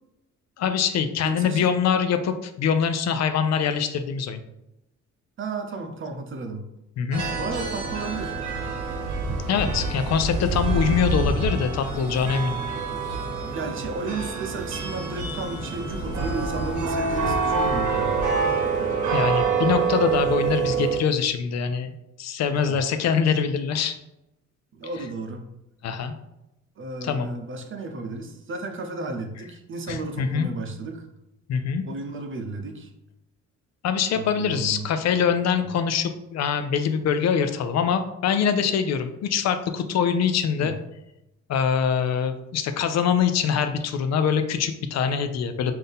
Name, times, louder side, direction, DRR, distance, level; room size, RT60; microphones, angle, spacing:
voice 1, 0.6-4.4 7.0-7.2 9.5-12.6 19.1-21.9 22.2-24.0 25.8-26.1 27.0-27.3 29.9-30.5 31.5-31.8 33.8-40.7 41.5-45.7, left 7 dB, 60° left, 9 dB, 0.5 m, -24 dB
voice 2, 1.2-1.7 5.4-6.7 7.4-8.4 13.5-18.2 22.5-22.8 24.7-25.4 26.8-31.1 31.8-32.9 34.1-34.9 40.6-40.7, right 3 dB, 45° right, 4 dB, 0.7 m, -33 dB
sound 1, 7.1-21.0, right 4 dB, 75° right, 0.9 m, -26 dB
3.8 x 2.7 x 3.5 m, 0.89 s
cardioid pair, 90°, 30 cm